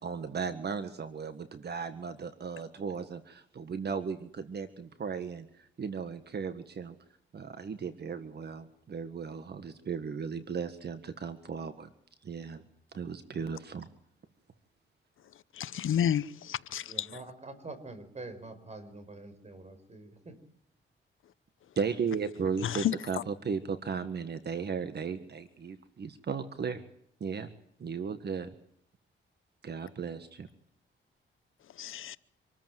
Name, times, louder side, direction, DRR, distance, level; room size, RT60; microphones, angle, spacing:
voice 1, 0.0-6.9 7.3-11.9 12.2-12.6 12.9-13.9 21.7-26.8 27.2-27.5 27.8-28.5 29.6-30.5, right 6 dB, 55° right, 1.7 m, -36 dB
voice 2, 15.6-17.1 22.8-22.9 31.8-32.2, left 10 dB, 75° left, 0.8 m, -30 dB
voice 3, 16.9-20.4, right 2 dB, 35° right, 4.8 m, -46 dB
26.5 x 14.0 x 9.3 m
cardioid pair, 115°, 21 cm